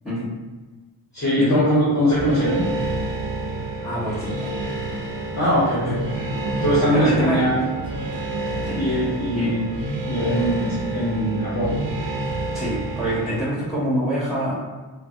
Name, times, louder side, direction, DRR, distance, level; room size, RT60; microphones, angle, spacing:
voice 1, 1.1-2.6 5.4-6.0 6.6-7.6 8.8-9.7 10.1-11.7, equal, 35° left, -8 dB, 0.8 m, -21 dB
sound 1, 2.1-13.4, right 2 dB, 65° right, 0.6 m, -29 dB
voice 2, 3.5-4.5 5.8-5.9 6.9-7.5 8.6-8.8 9.4-9.5 12.5-14.7, equal, ahead, -9 dB, 1.3 m, -26 dB
sound 2, 6.1-10.3, equal, 30° right, 0.9 m, -38 dB
3.2 x 2.2 x 2.7 m, 1.3 s
wide cardioid pair, 110°, 48 cm